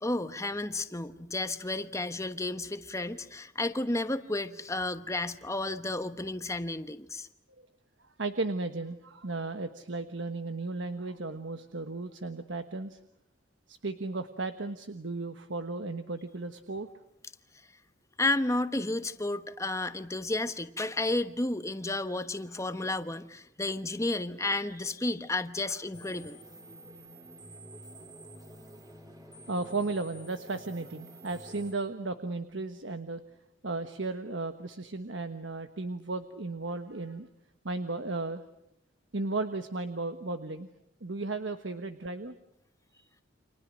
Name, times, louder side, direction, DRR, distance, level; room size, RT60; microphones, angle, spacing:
voice 1, 0.0-7.3 18.2-26.4, left 2 dB, 15° left, 10 dB, 1.1 m, -32 dB
voice 2, 8.2-13.0 13.7-16.9 29.5-33.2 33.6-37.3 37.6-38.4 39.1-40.7 41.0-42.3, right 3 dB, 75° right, 8 dB, 1.3 m, -35 dB
sound 1, 25.9-31.7, right 1 dB, 20° right, 2.8 m, -49 dB
30.0 x 26.5 x 6.4 m, 0.81 s
head